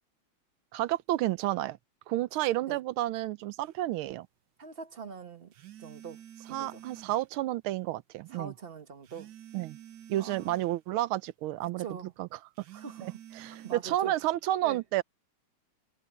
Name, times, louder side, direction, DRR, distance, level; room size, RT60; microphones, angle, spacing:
voice 1, 0.7-1.8 2.1-4.3 6.5-8.5 9.5-9.8 10.1-11.8 12.2-12.3 13.0-15.0, right 15 dB, 85° right, 1.5 m, -31 dB
sound 1, 3.6-3.8 5.5-7.3 9.0-10.8 12.6-13.8, right 11 dB, 60° right, 1.5 m, -49 dB
voice 2, 4.6-5.5 5.8-6.2 6.5-6.8 8.3-9.3 10.2-10.6 11.6-12.1 12.7-13.2 13.4-14.2 14.6-14.8, right 6 dB, 30° right, 1.3 m, -43 dB
omnidirectional pair, 2.3 m